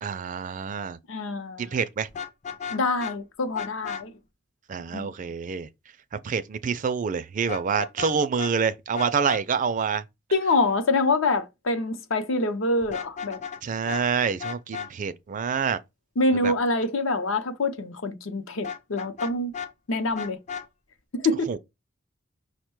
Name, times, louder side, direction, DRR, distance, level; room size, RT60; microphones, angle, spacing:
voice 1, 0.0-1.0 1.6-2.1 4.7-5.7 6.1-10.0 13.6-15.8 16.3-16.5 21.5-21.6, right 6 dB, 40° right, 0.3 m, -27 dB
voice 2, 1.1-1.8 2.7-4.1 4.9-5.1 10.3-13.4 16.2-19.5 19.9-20.4 21.1-21.5, left 2 dB, 75° left, 0.7 m, -25 dB
Vehicle horn car horn honking, 2.1-3.2 3.5-4.0 7.5-8.1 8.4-8.5 8.9-9.4 12.8-13.6 13.9-14.0 14.4-14.9 18.6-19.7 20.1-20.7, left 7 dB, 35° left, 0.4 m, -34 dB
5.3 x 2.2 x 4.5 m
head